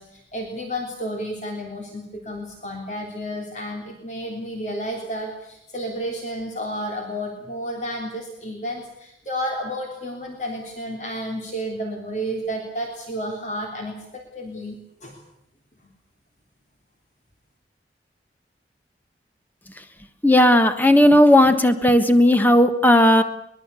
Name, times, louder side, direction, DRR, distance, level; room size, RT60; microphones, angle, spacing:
voice 1, 0.0-15.2, equal, 40° left, 2 dB, 3.4 m, -31 dB
voice 2, 20.2-23.2, left 1 dB, 10° left, 9 dB, 1.4 m, -15 dB
23.0 x 21.5 x 8.4 m, 0.77 s
head